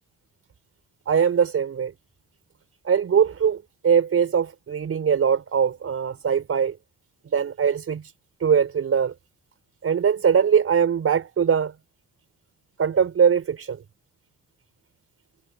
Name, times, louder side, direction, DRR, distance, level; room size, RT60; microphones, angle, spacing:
voice 1, 1.1-1.9 2.8-6.8 7.3-8.0 8.4-9.1 9.8-11.7 12.8-13.8, right 7 dB, 50° right, 4.6 m, -21 dB
cardioid pair, 90°, 30 cm